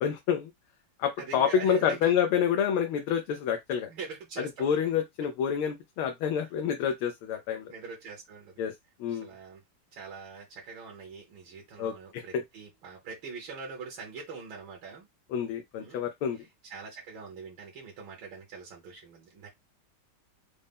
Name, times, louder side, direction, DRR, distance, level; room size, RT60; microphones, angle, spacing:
voice 1, 0.0-0.5 1.0-3.9 4.4-7.7 8.6-8.7 9.0-9.3 11.8-12.4 15.3-16.4, left 8 dB, 85° left, 1.5 m, -28 dB
voice 2, 1.2-2.1 3.9-4.9 7.7-8.6 9.1-9.6 9.9-15.1 15.8-16.0 16.6-19.5, right 5 dB, 70° right, 1.9 m, -43 dB
5.3 x 2.1 x 3.5 m
omnidirectional pair, 2.3 m